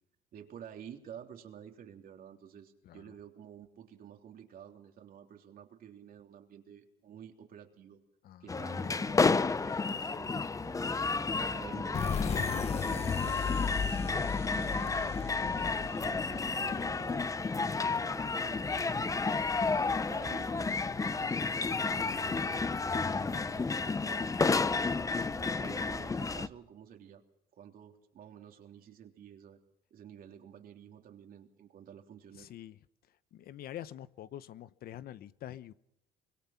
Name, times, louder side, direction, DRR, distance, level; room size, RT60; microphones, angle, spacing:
voice 1, 0.3-8.0 8.4-10.7 11.4-17.3 17.7-19.4 20.0-24.9 25.6-27.2 27.5-29.6 29.9-32.5, right 9 dB, 60° right, 3.3 m, -51 dB
voice 2, 2.8-3.1 8.2-8.5 32.4-32.8 33.3-35.7, left 12 dB, 65° left, 1.0 m, -46 dB
sound 1, 8.5-26.5, left 4 dB, 20° left, 0.8 m, -31 dB
sound 2, 10.6-26.5, right 3 dB, 15° right, 1.6 m, -50 dB
sound 3, 11.9-17.5, left 7 dB, 40° left, 1.1 m, -36 dB
25.5 x 21.0 x 5.9 m
cardioid pair, 110°, 17 cm